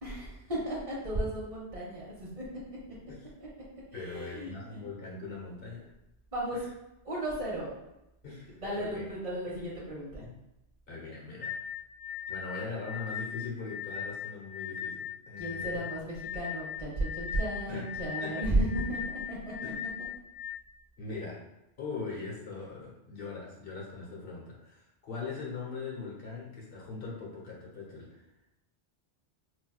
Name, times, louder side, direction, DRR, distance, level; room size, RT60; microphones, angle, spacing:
voice 1, 0.0-2.8 3.9-4.8 6.3-6.6 7.0-7.7 8.6-10.2 15.4-19.7 21.1-21.2, right 1 dB, 35° right, -7 dB, 0.8 m, -34 dB
voice 2, 3.9-5.9 6.5-6.6 8.2-9.0 10.2-10.3 10.9-11.6 12.3-15.8 17.7-17.8 18.2-18.4 19.6-19.7 21.0-21.4 21.8-28.2, left 4 dB, 60° left, -3 dB, 1.0 m, -41 dB
sound 1, 11.4-20.5, left 8 dB, 80° left, 0.8 m, -38 dB
4.3 x 2.2 x 2.2 m, 0.90 s
omnidirectional pair, 1.1 m